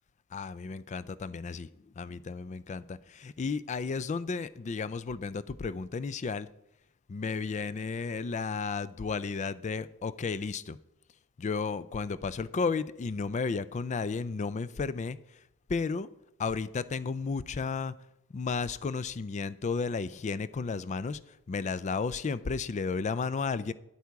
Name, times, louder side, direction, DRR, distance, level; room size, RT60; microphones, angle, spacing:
voice 1, 0.3-1.7 2.0-6.5 7.1-10.8 11.4-15.2 15.7-16.1 16.4-18.0 18.3-21.2 21.5-23.7, left 4 dB, 35° left, 17 dB, 0.4 m, -33 dB
9.5 x 8.4 x 4.7 m, 0.86 s
head